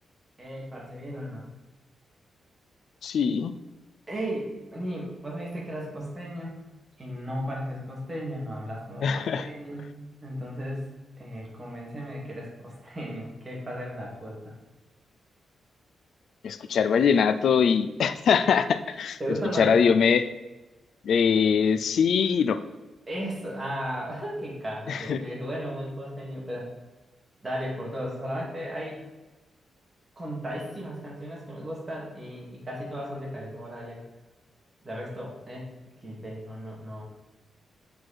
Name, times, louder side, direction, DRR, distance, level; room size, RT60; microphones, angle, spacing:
voice 1, 0.4-1.5 4.1-6.6 7.0-10.8 11.2-14.6 19.2-20.2 23.1-26.7 27.4-29.0 30.2-34.0 34.8-35.7 36.0-37.0, equal, 25° right, -3 dB, 2.2 m, -35 dB
voice 2, 3.0-3.5 9.0-9.5 16.4-19.2 19.6-20.2 21.0-22.6 24.9-25.2, left 6 dB, 70° left, 11 dB, 0.4 m, -22 dB
6.5 x 4.6 x 4.2 m, 1.1 s
wide cardioid pair, 120°, 0 cm